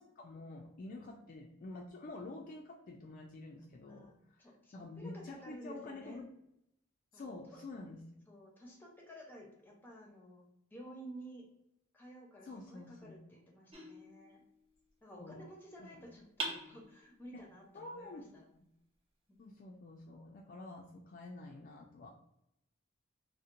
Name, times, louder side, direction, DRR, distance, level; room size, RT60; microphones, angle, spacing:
voice 1, 0.0-4.4 4.7-6.3 7.1-8.0 12.4-13.2 15.2-15.4 15.8-16.1 17.3-17.4 17.7-18.3 18.5-18.6 19.4-22.1, left 2 dB, 45° left, 0 dB, 0.3 m, -48 dB
voice 2, 0.9-1.2 3.8-6.2 7.1-7.6 8.3-10.4 10.7-11.5 11.9-14.4 15.0-18.4 19.3-19.8, right 1 dB, 10° left, -1 dB, 0.6 m, -53 dB
sound 1, 13.7-14.9 16.4-17.4, right 2 dB, 30° right, 0.6 m, -44 dB
2.8 x 2.1 x 2.4 m, 0.81 s
head